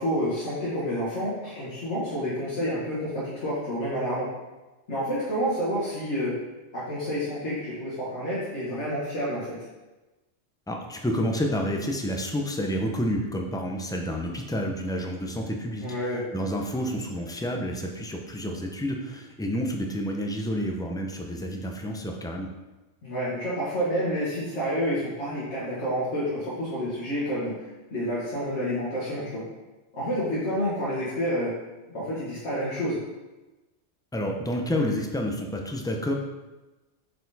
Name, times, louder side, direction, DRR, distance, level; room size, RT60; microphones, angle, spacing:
voice 1, 0.0-4.3 4.9-6.3 6.7-9.7 15.8-16.2 23.0-29.4 29.9-31.5 31.9-33.0, equal, 80° left, -8 dB, 1.7 m, -29 dB
voice 2, 10.7-15.8 16.3-22.5 34.1-36.1, equal, 5° left, 1 dB, 0.3 m, -29 dB
6.5 x 4.3 x 4.0 m, 1.1 s
omnidirectional pair, 1.2 m